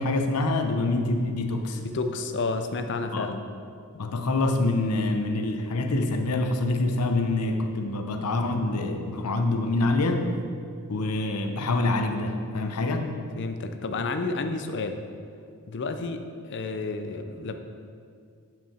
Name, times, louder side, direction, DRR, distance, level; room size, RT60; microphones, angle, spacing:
voice 1, 0.0-1.8 3.1-3.3 3.9-10.3 10.9-13.1, left 2 dB, 85° left, 6 dB, 0.7 m, -26 dB
voice 2, 1.8-3.4 13.4-15.0 15.7-16.2 16.5-17.5, left 3 dB, 55° left, 7 dB, 0.6 m, -30 dB
9.0 x 6.0 x 4.3 m, 2.2 s
head